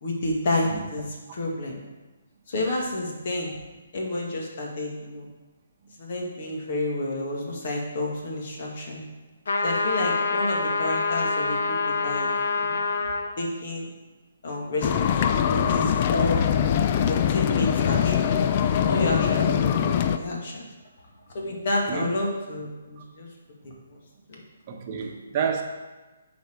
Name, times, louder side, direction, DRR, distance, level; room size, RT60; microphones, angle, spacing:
voice 1, 0.0-1.7 2.5-3.6 3.9-5.3 6.0-9.0 9.6-12.8 13.4-13.9 14.4-16.4 16.8-20.7 21.3-23.3 23.6-24.0 24.3-24.4, left 1 dB, 55° left, -1 dB, 2.0 m, -30 dB
sound 1, 9.5-13.3, left 3 dB, 70° left, 0.9 m, -26 dB
sound 2, 14.8-20.2, left 8 dB, 35° left, 0.4 m, -22 dB
voice 2, 24.7-25.6, right 7 dB, 35° right, 2 dB, 1.0 m, -29 dB
10.5 x 4.4 x 4.6 m, 1.2 s
hypercardioid pair, 145°, 0 cm